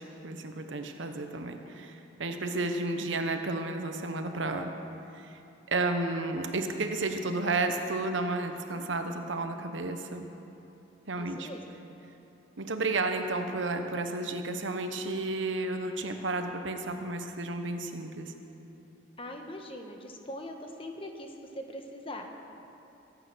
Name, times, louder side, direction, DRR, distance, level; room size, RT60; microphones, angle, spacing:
voice 1, 0.0-4.7 5.2-5.4 5.7-10.2 11.1-11.5 12.6-18.3, right 2 dB, 75° right, 6 dB, 1.1 m, -32 dB
voice 2, 8.7-9.2 11.2-11.6 19.2-22.3, left 1 dB, 30° left, 3 dB, 1.4 m, -42 dB
23.5 x 9.0 x 6.3 m, 2.9 s
head